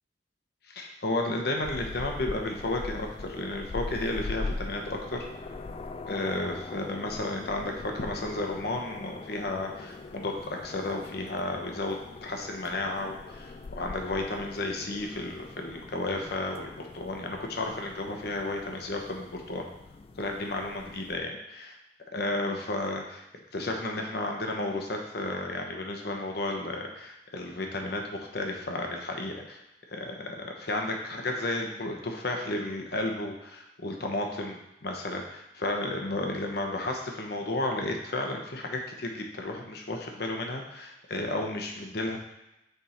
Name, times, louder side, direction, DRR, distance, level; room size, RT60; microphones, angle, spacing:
voice 1, 0.7-5.3 6.1-19.7 20.2-21.8 22.1-23.2 23.5-28.0 28.3-29.6 29.9-42.2, left 2 dB, 65° left, 2 dB, 1.0 m, -33 dB
sound 1, 1.6-21.2, left 3 dB, 35° left, 0.3 m, -42 dB
6.7 x 3.6 x 4.4 m, 0.91 s
head